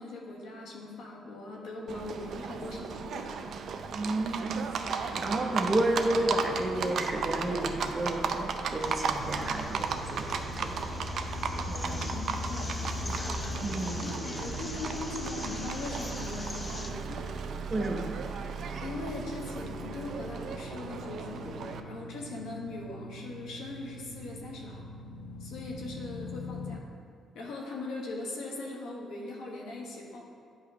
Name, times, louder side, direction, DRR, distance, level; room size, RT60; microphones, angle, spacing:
voice 1, 0.0-3.4 3.7-3.8 11.9-13.2 14.0-17.4 18.8-24.9 25.4-26.8 27.3-30.2, left 2 dB, 85° left, -1 dB, 1.1 m, -40 dB
Livestock farm animals working animals, 1.9-21.8, right 5 dB, 65° right, 0.4 m, -35 dB
voice 2, 3.9-10.8 11.7-12.0 13.6-14.1 17.7-18.2, right 1 dB, 30° right, 2 dB, 0.7 m, -31 dB
sound 1, 8.8-16.9, left 2 dB, 20° left, 0.6 m, -44 dB
sound 2, 9.2-26.8, left 2 dB, 65° left, 0.4 m, -42 dB
8.4 x 2.9 x 4.9 m, 2.4 s
cardioid pair, 90°, 0 cm